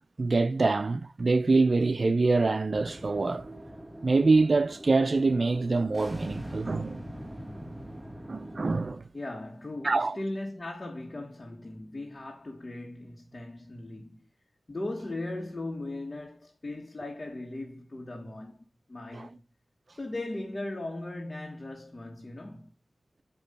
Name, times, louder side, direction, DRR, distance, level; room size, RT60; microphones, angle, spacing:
voice 1, 0.2-3.6 4.0-7.1 8.3-9.0 9.8-10.2 19.1-19.3, right 3 dB, 55° right, 0.6 m, -25 dB
sound 1, 2.7-8.7, equal, 10° right, 1.2 m, -42 dB
voice 2, 9.1-14.3 14.7-19.4 20.0-22.7, left 2 dB, 45° left, 1.7 m, -38 dB
8.6 x 3.1 x 5.5 m
cardioid pair, 40°, 0 cm